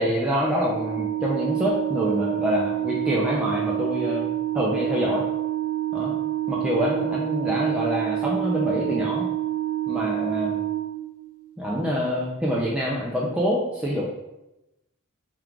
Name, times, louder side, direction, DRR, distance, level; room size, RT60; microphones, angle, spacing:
voice 1, 0.0-4.3 4.5-5.2 5.9-6.2 6.5-9.3 9.9-10.5 11.6-14.0, equal, 5° right, -5 dB, 0.4 m, -26 dB
Organ, 0.6-11.5, right 14 dB, 75° right, 0.5 m, -28 dB
3.6 x 2.4 x 4.5 m, 0.94 s
head